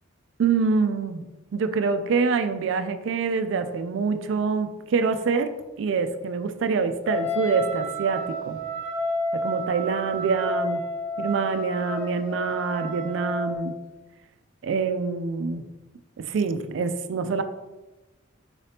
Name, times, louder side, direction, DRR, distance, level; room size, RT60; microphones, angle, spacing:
voice 1, 0.4-1.3 1.5-8.6 9.3-10.8 11.2-13.8 14.6-15.6 16.2-17.4, right 5 dB, 70° right, 10 dB, 0.3 m, -25 dB
Wind instrument woodwind instrument, 7.0-13.7, left 1 dB, 20° left, 1.3 m, -30 dB
4.8 x 3.3 x 2.7 m, 1.1 s
head